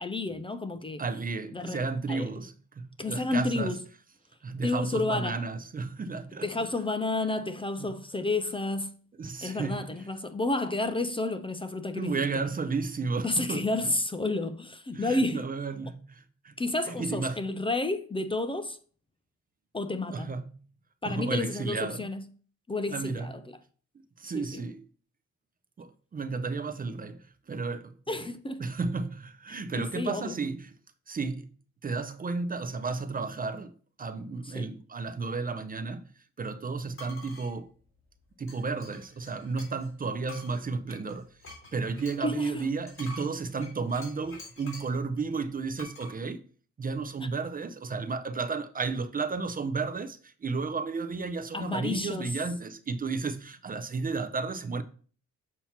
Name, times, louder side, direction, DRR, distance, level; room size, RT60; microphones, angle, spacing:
voice 1, 0.0-1.0 1.5-1.8 2.1-2.3 3.0-3.8 4.6-5.4 6.4-8.9 9.4-12.1 13.2-15.5 16.6-18.8 19.7-20.3 21.0-22.2 22.7-23.4 24.3-24.6 28.1-28.6 29.5-30.3 34.6-34.7 42.2-42.7 47.2-47.3 51.5-52.3, left 2 dB, 15° left, 0.5 m, -31 dB
voice 2, 1.0-3.8 4.4-6.5 7.8-7.9 9.2-9.9 12.0-13.7 14.9-16.5 17.0-17.4 20.1-20.5 21.0-22.1 22.9-23.3 24.2-24.9 25.8-28.0 28.6-30.7 31.1-31.5 31.8-36.0 36.4-37.7 38.4-41.3 41.7-46.4 46.8-54.8, right 4 dB, 30° right, 0.6 m, -33 dB
metal on metal, 36.9-37.5 38.5-39.9 40.3-45.0 45.8-46.1, left 1 dB, 45° left, 3.6 m, -47 dB
7.3 x 2.9 x 5.7 m
cardioid pair, 90°, 30 cm